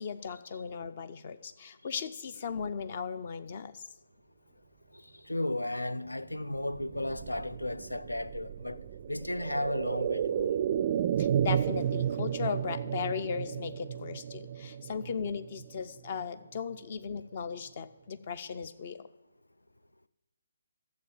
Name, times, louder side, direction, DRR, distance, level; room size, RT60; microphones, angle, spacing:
voice 1, 0.0-3.9 11.2-19.1, left 6 dB, 40° left, 0.6 m, -37 dB
voice 2, 5.3-10.6, left 1 dB, 80° left, 0.5 m, -34 dB
sound 1, 6.4-16.2 16.6-16.7, right 9 dB, 35° right, 0.3 m, -33 dB
12.5 x 7.6 x 7.3 m
figure-of-eight pair, 140°, 0 cm